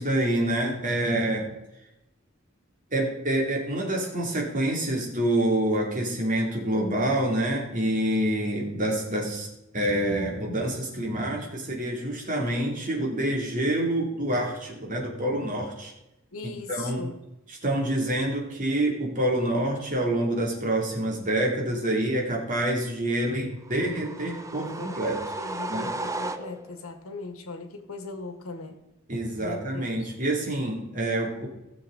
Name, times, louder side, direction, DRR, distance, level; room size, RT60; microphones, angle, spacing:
voice 1, 0.0-1.5 2.9-9.5 9.7-15.9 16.7-17.1 17.6-25.2 25.7-25.9 29.1-31.5, right 1 dB, 40° right, 0 dB, 2.7 m, -27 dB
voice 2, 16.3-17.2 25.4-28.8 29.4-30.1, left 3 dB, 80° left, 6 dB, 1.5 m, -39 dB
sound 1, 23.7-26.9, right 2 dB, 15° right, 0.6 m, -35 dB
17.0 x 6.9 x 3.8 m, 0.93 s
head